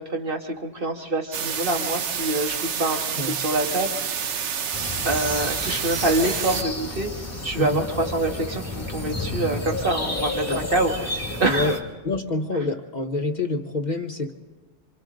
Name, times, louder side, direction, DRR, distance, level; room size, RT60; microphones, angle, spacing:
voice 1, 0.0-3.9 4.3-4.6 5.0-7.1 7.4-10.4 10.7-10.9 11.3-11.7, right 2 dB, 45° right, 3 dB, 2.0 m, -25 dB
sound 1, 1.3-6.6, right 7 dB, 75° right, 1.1 m, -28 dB
sound 2, 4.7-11.8, left 1 dB, 10° left, 2.3 m, -31 dB
voice 2, 7.6-7.9 10.5-10.7 11.5-11.8 12.0-14.3, left 2 dB, 40° left, 4 dB, 1.0 m, -27 dB
27.5 x 26.0 x 3.9 m, 1.3 s
omnidirectional pair, 1.2 m